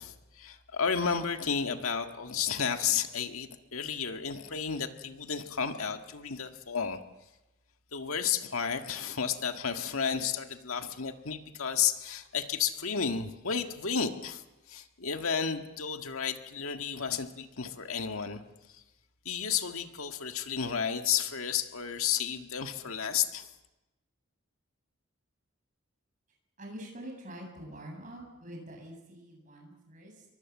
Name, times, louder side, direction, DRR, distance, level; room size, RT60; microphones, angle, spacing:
voice 1, 0.0-7.0 7.9-14.4 14.7-18.4 19.3-23.5, left 7 dB, 85° left, 6 dB, 1.8 m, -32 dB
voice 2, 26.6-30.3, right 1 dB, 35° right, 1 dB, 7.5 m, -45 dB
27.5 x 23.0 x 7.3 m, 1.0 s
head